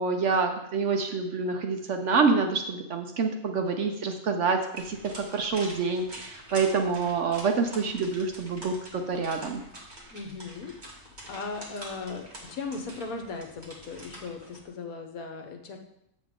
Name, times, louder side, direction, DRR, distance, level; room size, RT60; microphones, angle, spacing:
voice 1, 0.0-9.6, right 4 dB, 60° right, 5 dB, 0.9 m, -27 dB
sound 1, 4.8-14.6, right 1 dB, 30° right, 1.8 m, -46 dB
voice 2, 10.1-15.8, left 4 dB, 70° left, 4 dB, 1.4 m, -38 dB
7.5 x 7.2 x 3.7 m, 0.79 s
omnidirectional pair, 1.6 m